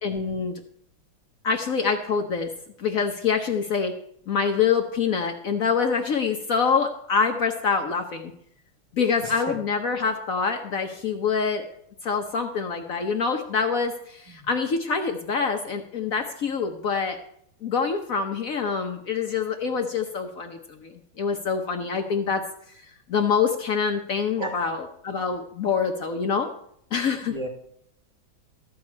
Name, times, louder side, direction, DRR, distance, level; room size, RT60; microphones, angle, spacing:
voice 1, 0.0-0.5 1.4-2.5 2.8-3.9 4.3-8.3 8.9-11.7 12.0-17.2 17.6-22.5 22.7-26.5 26.9-27.4, left 5 dB, 55° left, 5 dB, 1.0 m, -25 dB
voice 2, 27.1-27.5, right 2 dB, 15° right, 0 dB, 2.1 m, -34 dB
13.5 x 4.7 x 8.5 m, 0.70 s
omnidirectional pair, 2.2 m